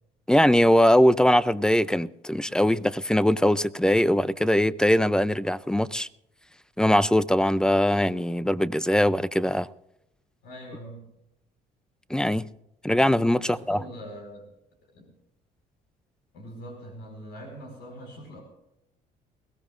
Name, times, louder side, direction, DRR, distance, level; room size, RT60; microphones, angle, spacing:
voice 1, 0.3-6.1 6.8-9.7 12.1-12.5 12.8-13.8, equal, 5° left, 0.4 m, -21 dB
voice 2, 10.4-11.1 13.4-14.5 14.9-15.1 16.3-18.4, equal, 85° left, 4.6 m, -42 dB
21.5 x 16.5 x 2.5 m
cardioid pair, 110°, 17 cm